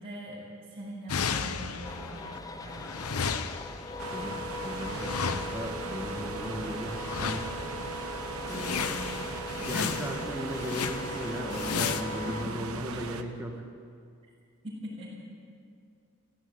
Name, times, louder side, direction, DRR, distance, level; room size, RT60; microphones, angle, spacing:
voice 1, 0.0-3.0 12.3-12.4 14.6-15.1, equal, 30° right, -11 dB, 6.4 m, -42 dB
sound 1, 1.1-2.4 2.6-5.9 6.9-7.8 8.1-8.2 8.5-12.0, left 6 dB, 85° left, 0.9 m, -34 dB
sound 2, 1.8-12.5, left 1 dB, 15° left, 0.9 m, -40 dB
sound 3, 4.0-13.2, right 4 dB, 75° right, 1.1 m, -39 dB
voice 2, 4.1-7.5 8.4-9.1 9.6-13.7, equal, 10° right, 1 dB, 1.9 m, -37 dB
17.5 x 16.0 x 9.8 m, 2.3 s
head